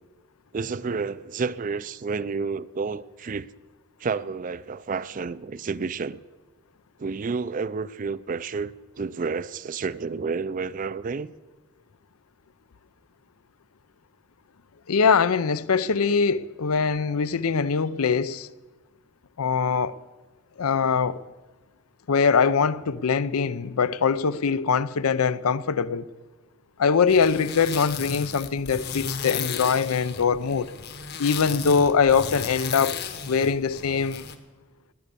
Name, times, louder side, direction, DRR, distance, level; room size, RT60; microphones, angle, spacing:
voice 1, 0.5-3.5 4.0-6.2 7.0-11.3, right 4 dB, 35° right, 0.4 m, -30 dB
voice 2, 14.9-18.5 19.4-20.0 20.6-21.2 22.1-26.1 26.8-30.7 31.2-33.0 33.3-34.2, left 5 dB, 90° left, 0.6 m, -22 dB
sound 1, 27.1-34.3, left 6 dB, 50° left, 1.1 m, -34 dB
19.0 x 9.6 x 6.8 m
head